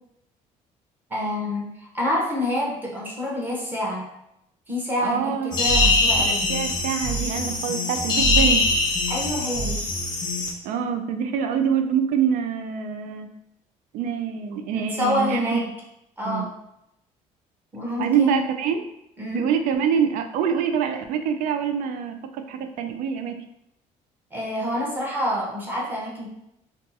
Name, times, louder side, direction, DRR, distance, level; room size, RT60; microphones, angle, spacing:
voice 1, 1.1-4.1 4.7-6.5 9.1-9.8 14.7-15.7 16.2-16.5 17.7-18.5 19.2-19.5 24.3-26.3, left 1 dB, 15° right, -4 dB, 0.7 m, -27 dB
voice 2, 5.0-5.6 6.5-8.6 10.6-13.3 13.9-15.6 16.2-16.5 18.0-18.8 19.3-23.3, right 7 dB, 75° right, 6 dB, 0.4 m, -25 dB
sound 1, 5.5-10.5, left 2 dB, 30° left, 0.6 m, -22 dB
2.6 x 2.3 x 3.9 m, 0.83 s
cardioid pair, 175°, 14 cm